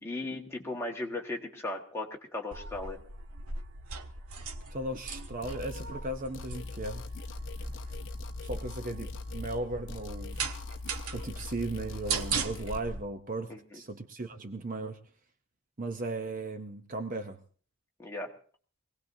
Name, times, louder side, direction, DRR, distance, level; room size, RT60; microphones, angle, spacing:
voice 1, 0.0-3.0 13.5-13.8 18.0-18.3, left 2 dB, 10° left, 0 dB, 1.6 m, -37 dB
sound 1, 2.5-13.0, right 4 dB, 80° right, 1.0 m, -39 dB
voice 2, 4.7-7.1 8.4-10.4 11.1-15.0 15.8-17.4, right 2 dB, 35° right, 7 dB, 0.7 m, -36 dB
sound 2, 5.4-5.9 6.3-9.6 9.9-12.8, left 3 dB, 55° left, 0.6 m, -42 dB
23.5 x 17.5 x 2.7 m, 0.43 s
head